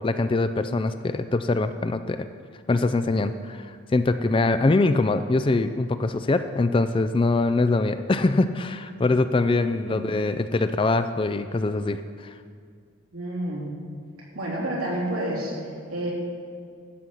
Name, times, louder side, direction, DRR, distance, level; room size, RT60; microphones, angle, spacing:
voice 1, 0.0-2.3 2.7-3.7 3.9-12.0, left 2 dB, 25° left, 10 dB, 0.3 m, -23 dB
voice 2, 13.1-13.7 14.3-15.5 15.9-16.1, right 1 dB, 80° right, -5 dB, 3.3 m, -29 dB
12.5 x 5.7 x 7.8 m, 2.2 s
head